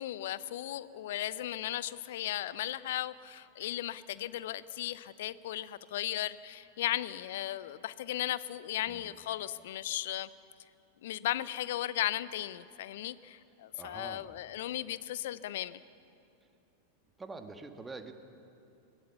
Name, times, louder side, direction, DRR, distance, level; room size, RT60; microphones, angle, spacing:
voice 1, 0.0-10.3 11.0-15.8, left 13 dB, 55° left, 17 dB, 0.6 m, -36 dB
voice 2, 13.7-14.4 16.4-16.5 17.2-18.1, right 3 dB, 15° right, 7 dB, 1.5 m, -46 dB
22.0 x 17.5 x 7.1 m, 2.7 s
figure-of-eight pair, 90°, 0 cm